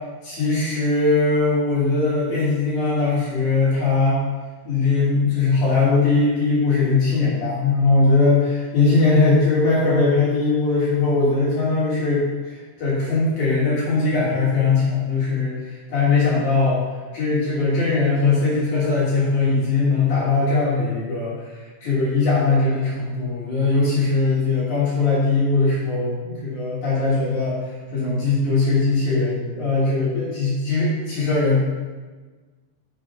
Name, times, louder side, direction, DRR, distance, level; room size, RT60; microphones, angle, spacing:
voice 1, 0.2-4.2 4.6-16.8 17.1-27.6 27.9-31.6, left 3 dB, 65° left, -8 dB, 2.0 m, -20 dB
6.8 x 3.7 x 5.3 m, 1.3 s
omnidirectional pair, 5.4 m